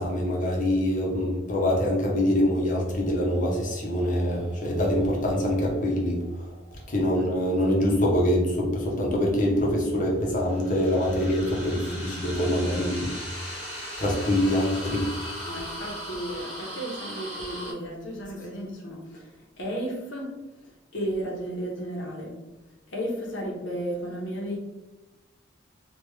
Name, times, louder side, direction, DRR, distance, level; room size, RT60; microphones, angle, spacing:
voice 1, 0.0-6.5 6.9-13.1 14.0-15.1, left 1 dB, 40° left, -2 dB, 0.8 m, -24 dB
sound 1, 2.6-7.7 10.2-17.7, equal, 30° right, 1.3 m, -39 dB
voice 2, 15.5-20.3 20.9-22.3 22.9-24.6, right 1 dB, 75° left, -2 dB, 0.9 m, -33 dB
3.4 x 2.4 x 3.2 m, 1.1 s
head